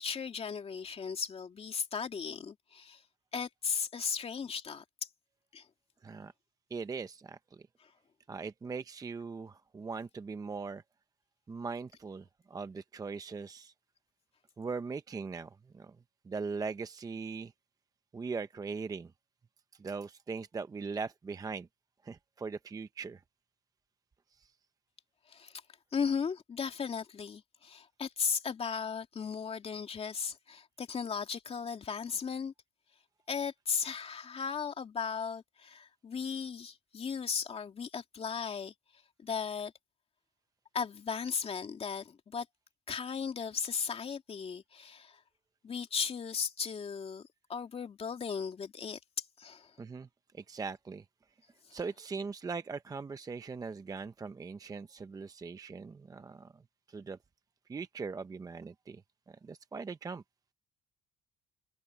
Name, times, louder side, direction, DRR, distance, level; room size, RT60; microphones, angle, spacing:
voice 1, 0.0-3.0 3.3-4.8 5.5-5.7 7.8-7.9 25.3-25.6 25.9-32.5 33.3-38.7 39.2-39.7 40.7-42.5 42.9-45.2 45.6-49.8 51.7-51.8, left 6 dB, 35° left, 2.5 m, -36 dB
voice 2, 6.7-7.4 8.3-10.8 11.5-13.7 14.6-16.0 16.2-17.5 18.1-19.1 19.8-21.7 22.0-23.2 24.4-24.5 49.8-50.1 50.3-51.0 51.7-56.6 56.9-57.2 57.7-59.0 59.3-60.2, right 4 dB, 20° right, 0.6 m, -40 dB
cardioid pair, 110°, 17 cm